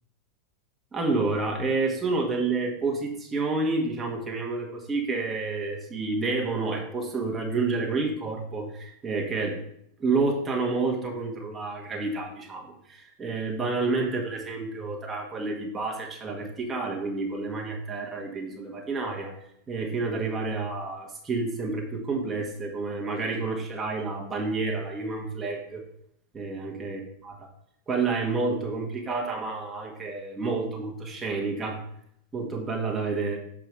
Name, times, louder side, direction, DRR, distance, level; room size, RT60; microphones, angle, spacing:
voice 1, 0.9-9.6 10.0-19.3 19.7-25.8 26.3-27.5 27.9-31.8 32.3-33.4, right 3 dB, 20° right, 0 dB, 1.3 m, -29 dB
6.7 x 3.8 x 4.7 m, 0.72 s
figure-of-eight pair, 90°, 0 cm